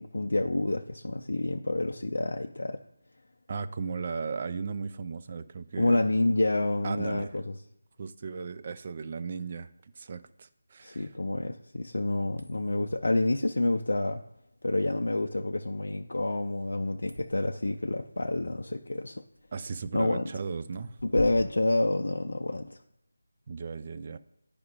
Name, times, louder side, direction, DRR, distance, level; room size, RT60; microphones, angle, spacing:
voice 1, 0.0-2.8 5.8-7.6 10.8-14.2 14.6-19.2 19.9-20.2 21.0-22.8, left 2 dB, 60° left, 3 dB, 0.4 m, -28 dB
voice 2, 3.5-6.0 6.8-7.3 8.0-9.7 10.0-11.1 19.5-21.0 23.5-24.2, right 5 dB, 30° right, 11 dB, 0.3 m, -36 dB
sound 1, 12.2-22.7, left 1 dB, 80° right, 0.8 m, -47 dB
10.5 x 4.9 x 2.4 m, 0.81 s
figure-of-eight pair, 160°, 0 cm